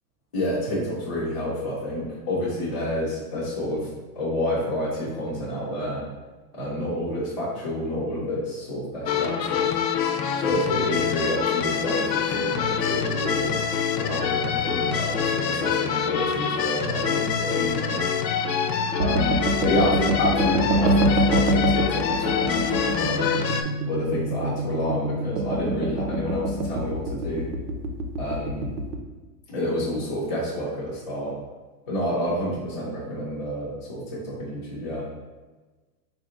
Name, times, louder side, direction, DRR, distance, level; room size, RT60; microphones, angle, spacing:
voice 1, 0.3-6.0 6.5-9.7 10.4-13.6 13.9-18.0 19.0-23.3 23.9-27.5 28.2-28.8 29.5-31.4 31.9-35.1, equal, 15° left, -12 dB, 0.4 m, -29 dB
sound 1, 9.1-23.6, left 7 dB, 80° left, 0.6 m, -25 dB
sound 2, 19.0-29.0, right 1 dB, 70° right, 0.8 m, -25 dB
4.2 x 2.6 x 3.6 m, 1.3 s
supercardioid pair, 170°, 49 cm